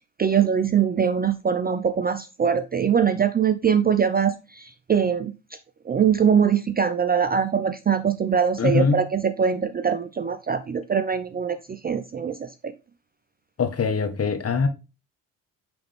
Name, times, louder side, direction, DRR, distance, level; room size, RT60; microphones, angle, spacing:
voice 1, 0.2-5.6 5.8-12.7, right 7 dB, 20° right, 0.5 m, -23 dB
voice 2, 8.6-9.0 13.6-14.7, left 5 dB, 35° left, 1.3 m, -22 dB
8.7 x 3.5 x 3.5 m
hypercardioid pair, 50°, 44 cm